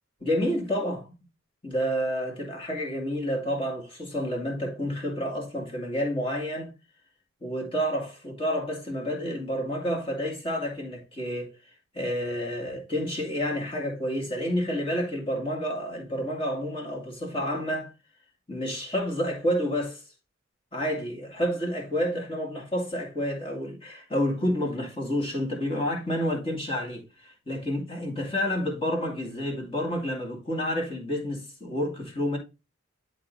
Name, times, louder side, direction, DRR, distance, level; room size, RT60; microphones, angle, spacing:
voice 1, 0.2-1.1 1.6-6.7 7.4-11.5 11.9-17.9 18.5-20.0 20.7-32.4, equal, 25° left, 2.3 m, -29 dB
11.5 x 3.9 x 2.6 m
head